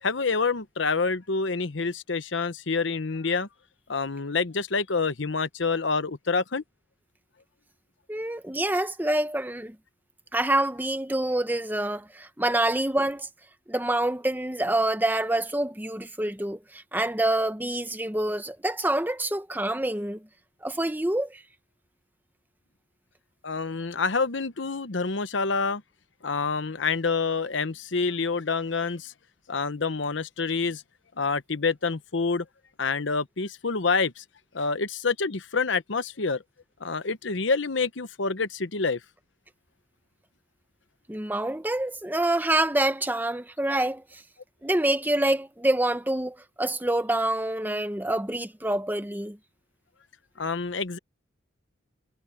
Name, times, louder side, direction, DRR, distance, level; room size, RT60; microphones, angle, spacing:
voice 1, 0.0-3.5 3.9-6.6 23.4-25.8 26.2-29.1 29.5-30.8 31.2-32.4 32.8-34.2 34.5-36.4 36.8-39.0 50.4-51.0, left 4 dB, 70° left, 1.0 m, -27 dB
voice 2, 8.1-9.8 10.3-13.3 13.7-20.2 20.6-21.4 41.1-44.2 44.6-49.4, right 1 dB, 10° right, 1.0 m, -26 dB
head